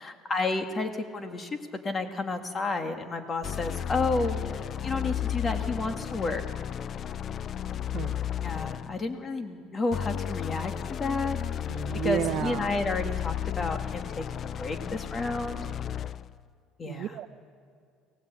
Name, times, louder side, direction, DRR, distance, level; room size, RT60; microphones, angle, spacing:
voice 1, 0.0-1.6 1.8-6.4 8.4-11.4 12.0-15.6 16.8-17.1, left 3 dB, 30° left, 6 dB, 1.9 m, -31 dB
sound 1, 3.4-9.0 9.9-16.3, left 9 dB, 45° left, 0.4 m, -33 dB
voice 2, 11.7-12.7 16.8-17.3, right 12 dB, 60° right, 7 dB, 0.7 m, -32 dB
23.5 x 17.0 x 8.3 m, 2.3 s
supercardioid pair, 95°, 0 cm